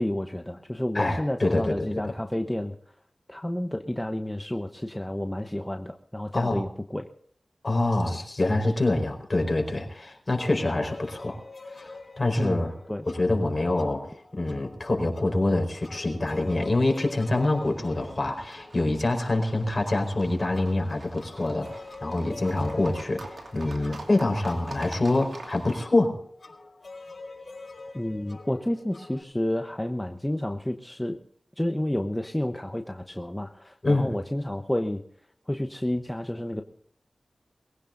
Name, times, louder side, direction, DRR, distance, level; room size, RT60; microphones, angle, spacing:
voice 1, 0.0-2.8 3.3-7.1 12.4-13.0 27.9-31.2 31.6-35.0 35.5-36.6, left 1 dB, 15° left, 5 dB, 0.9 m, -30 dB
voice 2, 0.9-2.1 6.3-6.6 7.6-11.4 11.7-12.7 13.1-14.1 14.3-21.7 22.0-26.1 33.8-34.1, left 2 dB, 40° left, 2 dB, 4.6 m, -25 dB
sound 1, 10.4-29.2, left 3 dB, 60° left, 4.9 m, -47 dB
Livestock farm animals working animals, 17.0-25.8, right 2 dB, 80° right, 2.7 m, -45 dB
23.0 x 16.5 x 2.6 m, 0.64 s
wide cardioid pair, 65°, 0 cm